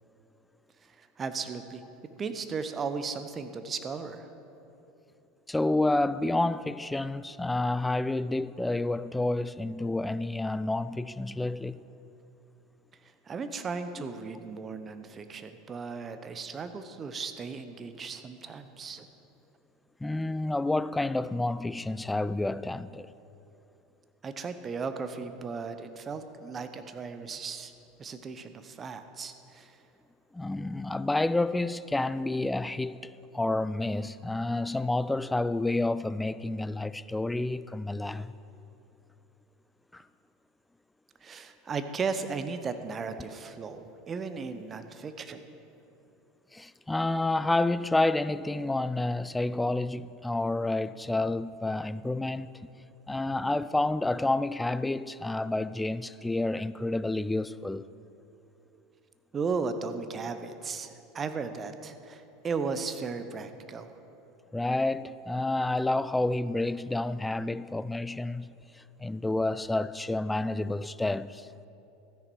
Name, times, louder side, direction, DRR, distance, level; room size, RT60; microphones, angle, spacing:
voice 1, 0.9-1.8 2.2-4.3 13.0-19.1 24.2-27.7 28.0-29.8 41.2-45.5 59.3-63.9, right 5 dB, 30° right, 0.8 m, -36 dB
voice 2, 5.5-11.8 20.0-23.1 30.3-33.1 33.3-38.3 39.9-40.0 46.5-52.5 53.1-57.9 64.5-71.5, left 2 dB, 10° left, 0.3 m, -29 dB
13.5 x 9.8 x 4.7 m
figure-of-eight pair, 80°, 0 cm